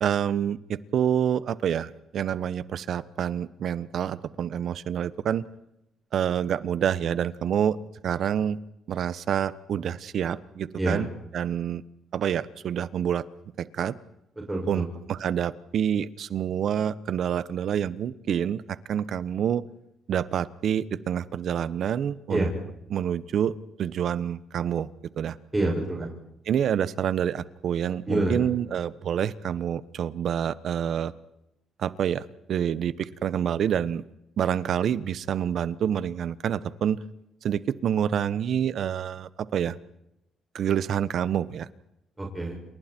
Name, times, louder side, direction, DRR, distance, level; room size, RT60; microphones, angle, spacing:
voice 1, 0.0-5.4 6.1-7.8 8.0-8.6 8.9-11.1 11.3-11.8 12.1-13.2 13.6-13.9 14.7-18.6 18.9-19.6 20.1-22.4 22.9-24.9 25.2-25.4 26.5-31.1 31.8-34.0 34.4-37.0 37.4-39.8 40.5-41.7, right 9 dB, 65° right, 16 dB, 1.2 m, -27 dB
voice 2, 10.8-11.1 14.5-14.9 22.3-22.5 25.5-26.1 28.1-28.5 42.2-42.5, right 2 dB, 15° right, -1 dB, 6.7 m, -27 dB
29.5 x 28.0 x 4.6 m, 0.83 s
cardioid pair, 90°, 0 cm